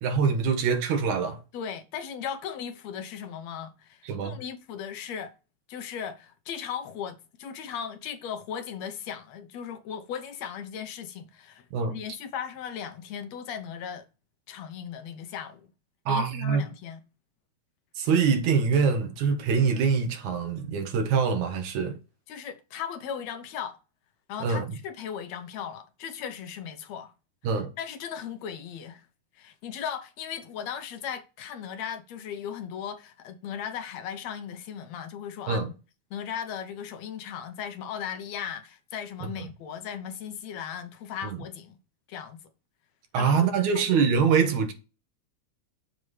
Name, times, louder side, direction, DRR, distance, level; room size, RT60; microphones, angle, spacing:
voice 1, 0.0-1.4 4.0-4.4 11.7-12.0 16.1-16.6 18.0-22.0 24.4-24.7 27.4-27.7 35.5-35.7 39.4-39.5 41.3-41.4 43.1-44.7, right 6 dB, 90° right, 2.8 m, -24 dB
voice 2, 1.5-5.3 5.7-11.7 11.9-14.1 14.5-15.7 16.1-17.0 22.3-23.8 24.3-27.1 27.5-29.0 29.4-35.7 36.1-41.8 42.1-42.5 43.2-43.9, left 8 dB, 70° left, 2.0 m, -37 dB
7.5 x 7.3 x 3.2 m
omnidirectional pair, 3.3 m